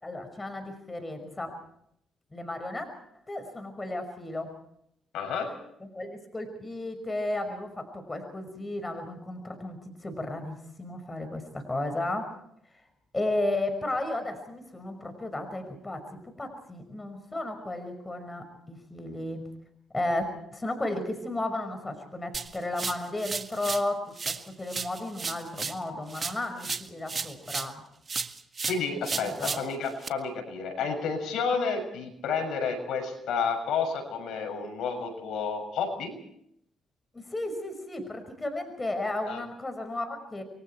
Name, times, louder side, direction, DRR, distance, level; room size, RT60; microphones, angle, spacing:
voice 1, 0.0-1.6 2.3-2.9 3.3-4.5 5.8-12.3 13.1-16.0 16.4-19.5 19.9-27.8 29.2-29.6 37.1-40.4, left 2 dB, 20° left, 7 dB, 5.5 m, -34 dB
voice 2, 5.1-5.5 28.7-36.2 39.3-39.4, left 5 dB, 75° left, 4 dB, 6.8 m, -30 dB
sound 1, 22.3-23.9 24.2-27.8 28.1-30.1, right 4 dB, 35° right, 1.7 m, -35 dB
29.0 x 23.5 x 4.6 m, 0.73 s
cardioid pair, 90°, 0 cm